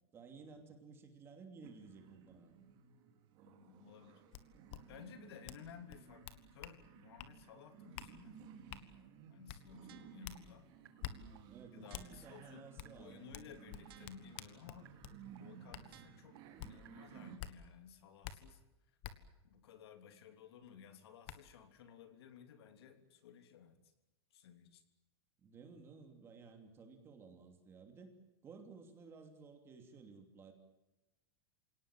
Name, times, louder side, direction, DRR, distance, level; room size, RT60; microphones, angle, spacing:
voice 1, 0.1-2.5 11.5-13.3 25.4-28.1 28.4-30.5, right 4 dB, 15° right, 5 dB, 3.0 m, -55 dB
sound 1, 1.6-17.4, right 8 dB, 35° right, 3.1 m, -57 dB
voice 2, 3.4-4.2 4.9-8.4 9.3-10.7 11.7-12.7 13.0-14.9 15.4-18.6 19.2-23.8 24.3-24.8, left 8 dB, 70° left, 8 dB, 3.2 m, -57 dB
sound 2, 4.3-4.4 4.7-4.8 5.4-5.6 5.9-6.8 7.2-7.3 7.9-8.1 8.7-8.8 9.5-9.6 10.2-10.4 11.0-11.1 11.9-12.1 12.8-12.9 13.3-15.2 15.7-15.8 16.6-16.7 17.4-17.5 18.2-18.3 19.0-19.1 20.6-20.7 21.2-21.4, left 13 dB, 35° left, 1.5 m, -47 dB
sound 3, 9.9-10.4 10.8-10.9 11.3-11.4 11.8-12.4 12.8-12.9 13.3-13.4 13.8-14.4 14.8-14.9 15.3-15.4 15.8-16.4 16.8-16.9, right 13 dB, 60° right, 1.7 m, -60 dB
27.5 x 18.5 x 9.1 m, 0.97 s
supercardioid pair, 170°, 14 cm